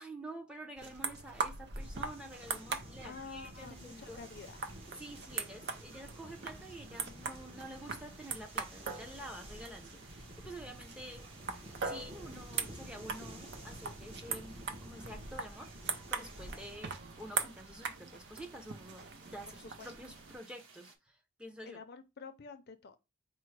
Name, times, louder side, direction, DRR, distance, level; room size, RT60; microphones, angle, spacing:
voice 1, 0.0-4.2 5.0-11.3 11.8-15.7 16.1-21.8, right 1 dB, 5° right, 0.6 m, -49 dB
sound 1, 0.8-20.4, right 5 dB, 55° right, 0.7 m, -42 dB
sound 2, 1.8-16.8, right 1 dB, 30° right, 1.0 m, -51 dB
voice 2, 3.0-4.6 19.5-19.9 21.6-23.0, left 5 dB, 55° left, 0.5 m, -49 dB
sound 3, 3.5-21.0, right 4 dB, 85° right, 1.0 m, -60 dB
4.4 x 2.1 x 4.6 m
head